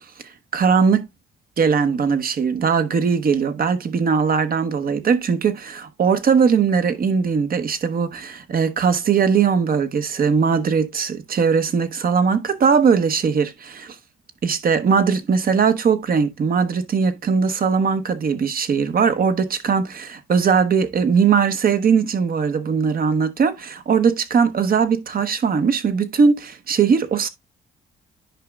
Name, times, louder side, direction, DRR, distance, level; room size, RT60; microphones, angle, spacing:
voice 1, 0.5-1.0 1.6-14.0 14.4-27.3, right 6 dB, 45° right, 1.0 m, -19 dB
10.5 x 5.0 x 2.3 m
cardioid pair, 90°, 20 cm